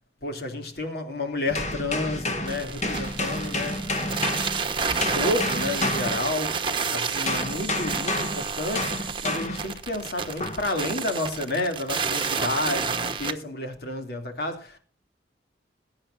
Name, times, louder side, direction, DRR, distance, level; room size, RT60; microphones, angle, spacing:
voice 1, 0.2-4.2 4.7-6.6 6.9-14.8, left 2 dB, 60° left, 2.7 m, -31 dB
sound 1, 1.5-6.8 7.3-9.8 10.4-10.7, left 2 dB, 40° left, 2.0 m, -30 dB
sound 2, 2.5-13.3, right 5 dB, 30° right, 1.1 m, -30 dB
21.5 x 9.1 x 2.6 m
head